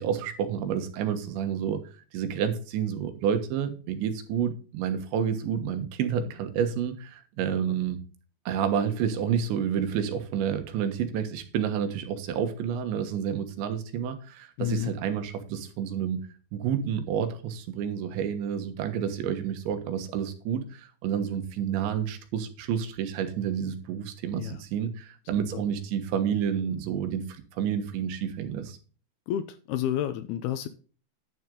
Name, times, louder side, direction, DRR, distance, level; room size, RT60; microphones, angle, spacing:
voice 1, 0.0-1.8 2.1-8.0 8.5-16.2 16.5-28.8, right 8 dB, 85° right, 7 dB, 3.7 m, -29 dB
voice 2, 14.6-14.9 24.4-24.6 25.5-25.6 29.3-30.7, left 11 dB, 80° left, 11 dB, 2.4 m, -30 dB
11.0 x 7.9 x 3.8 m, 0.37 s
omnidirectional pair, 5.1 m